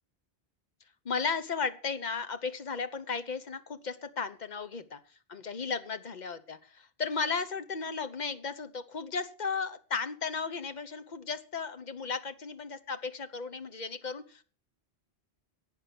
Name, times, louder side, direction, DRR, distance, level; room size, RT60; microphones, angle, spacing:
voice 1, 1.0-5.0 5.3-14.4, left 5 dB, 45° left, 11 dB, 1.0 m, -35 dB
11.5 x 8.7 x 6.0 m, 0.40 s
omnidirectional pair, 1.1 m